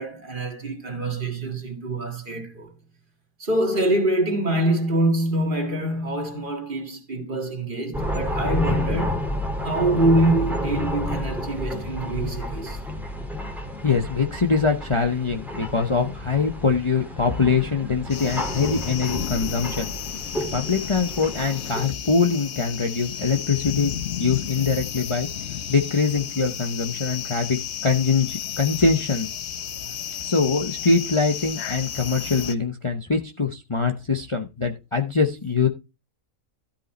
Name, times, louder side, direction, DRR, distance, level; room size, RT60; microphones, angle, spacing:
voice 1, 0.0-2.7 3.4-9.4 9.6-12.8, right 1 dB, 35° right, 2.2 m, -25 dB
sound 1, 7.9-21.8, left 1 dB, ahead, 2.0 m, -30 dB
voice 2, 13.8-19.9 20.5-23.9 24.2-25.3 25.7-29.3 30.2-35.7, left 4 dB, 25° left, 0.8 m, -23 dB
sound 2, 18.1-32.5, left 9 dB, 60° left, 0.9 m, -33 dB
13.0 x 5.5 x 4.3 m
omnidirectional pair, 1.4 m